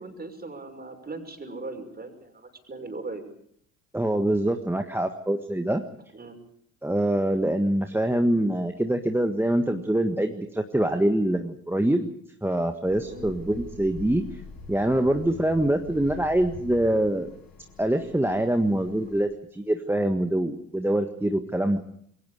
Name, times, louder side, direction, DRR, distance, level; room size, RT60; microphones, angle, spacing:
voice 1, 0.0-3.2 6.1-6.4 10.8-11.0 13.0-13.3, right 3 dB, 20° right, 5 dB, 5.8 m, -39 dB
voice 2, 3.9-5.8 6.8-12.1 12.4-14.2 14.7-17.3 17.8-21.8, right 1 dB, 5° right, 7 dB, 1.6 m, -24 dB
sound 1, 12.8-19.2, left 4 dB, 55° left, 6.4 m, -44 dB
27.5 x 22.0 x 5.0 m, 0.66 s
figure-of-eight pair, 55°, 44 cm